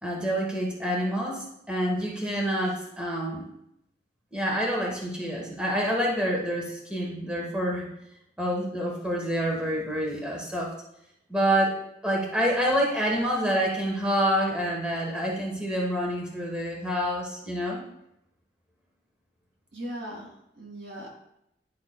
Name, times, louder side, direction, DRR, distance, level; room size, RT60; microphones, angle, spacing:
voice 1, 0.0-3.4 4.3-7.9 8.4-10.7 11.3-11.8 12.0-17.8, equal, 5° right, -2 dB, 1.1 m, -27 dB
voice 2, 19.7-21.1, equal, 90° right, -1 dB, 2.1 m, -39 dB
10.5 x 5.1 x 2.2 m, 0.80 s
head